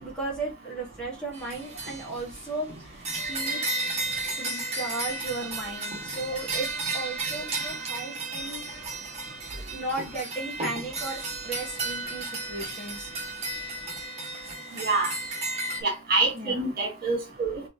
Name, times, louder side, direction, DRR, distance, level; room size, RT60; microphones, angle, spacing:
voice 1, 0.0-3.6 4.4-8.9 9.7-13.1 16.3-16.6, right 2 dB, 5° left, 1.7 m, -35 dB
sound 1, 1.3-15.8, right 2 dB, 30° right, 1.5 m, -33 dB
voice 2, 14.7-15.1 15.8-17.7, right 3 dB, 45° right, 1.8 m, -26 dB
4.2 x 3.2 x 2.8 m
head